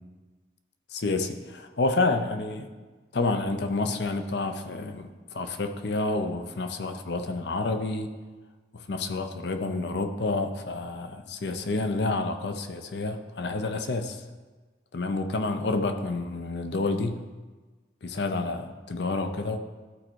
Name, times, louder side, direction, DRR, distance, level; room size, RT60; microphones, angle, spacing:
voice 1, 0.9-2.7 3.1-8.1 8.7-14.2 14.9-17.2 18.0-19.6, left 3 dB, 65° left, 7 dB, 0.6 m, -29 dB
12.5 x 4.3 x 4.6 m, 1.3 s
head